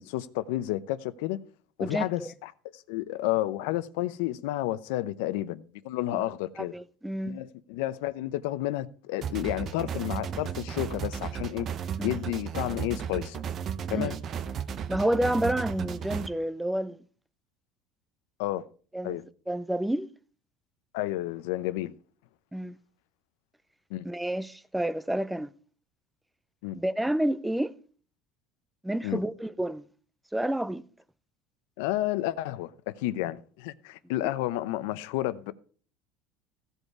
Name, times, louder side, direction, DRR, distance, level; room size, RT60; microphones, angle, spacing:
voice 1, 0.0-1.4 1.8-6.7 7.2-11.7 12.0-13.4 13.9-14.2 18.4-18.6 19.0-19.2 20.9-21.9 23.9-24.1 26.6-26.8 29.0-29.2 31.8-35.5, left 15 dB, 85° left, 0.7 m, -31 dB
voice 2, 1.8-2.3 6.1-6.2 6.6-7.4 12.0-12.2 13.9-14.1 14.9-17.0 18.9-19.2 19.5-20.1 22.5-22.8 24.0-25.5 26.7-27.7 28.8-29.8 30.3-30.8 34.2-34.3, right 1 dB, 5° right, 0.5 m, -29 dB
sound 1, 9.2-16.3, right 8 dB, 40° right, 0.7 m, -34 dB
16.0 x 5.4 x 4.8 m
cardioid pair, 140°, 0 cm